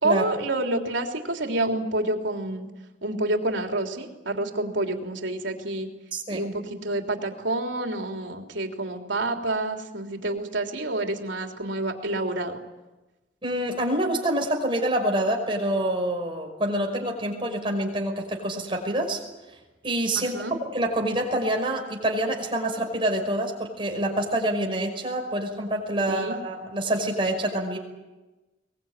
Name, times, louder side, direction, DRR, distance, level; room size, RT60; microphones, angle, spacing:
voice 1, 0.0-2.7 3.0-5.9 6.3-12.6 20.1-20.5 26.1-26.4, right 2 dB, 90° right, 3 dB, 3.3 m, -28 dB
voice 2, 6.1-6.4 13.4-19.2 19.8-27.8, right 1 dB, 30° right, 2 dB, 5.5 m, -26 dB
23.0 x 21.0 x 9.0 m, 1.1 s
head